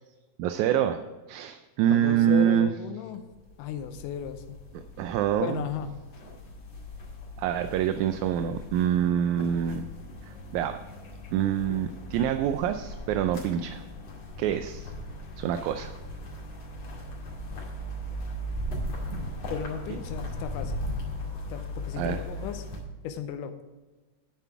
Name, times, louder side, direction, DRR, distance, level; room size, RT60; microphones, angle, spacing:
voice 1, 0.4-1.0 1.3-2.7 4.7-5.6 7.4-9.9 10.2-10.8 11.3-13.8 14.4-14.9 15.4-16.0 21.9-22.2, right 10 dB, 80° right, 8 dB, 1.9 m, -26 dB
voice 2, 1.9-3.2 3.6-4.6 5.4-5.9 19.5-20.9 21.5-22.7 23.0-23.5, left 8 dB, 90° left, 8 dB, 2.3 m, -35 dB
sound 1, 3.1-22.8, equal, 40° left, 2.8 m, -38 dB
10.0 x 9.2 x 4.7 m, 1.2 s
omnidirectional pair, 3.7 m